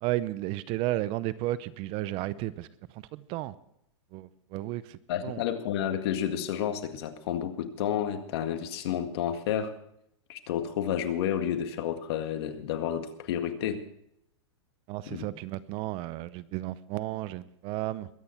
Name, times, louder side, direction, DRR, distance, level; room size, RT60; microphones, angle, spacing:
voice 1, 0.0-2.7 2.9-3.5 4.1-5.4 14.9-18.1, right 16 dB, 35° right, 17 dB, 0.7 m, -33 dB
voice 2, 5.1-9.7 10.3-13.8 15.1-15.3, left 9 dB, 60° left, 8 dB, 2.0 m, -30 dB
22.0 x 9.5 x 4.4 m, 0.74 s
hypercardioid pair, 130°, 15 cm